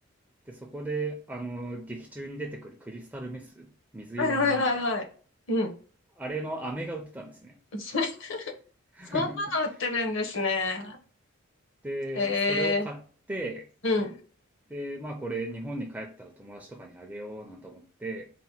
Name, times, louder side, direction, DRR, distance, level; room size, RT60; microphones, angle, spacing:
voice 1, 0.5-4.9 6.1-7.6 8.9-9.6 11.8-13.0 13.3-13.7 14.7-18.3, right 2 dB, 5° right, 0.4 m, -36 dB
voice 2, 4.2-5.0 5.5-5.7 7.7-8.5 9.1-11.0 12.1-12.9 13.8-14.2, left 3 dB, 60° left, 0.9 m, -27 dB
4.1 x 2.1 x 4.2 m
head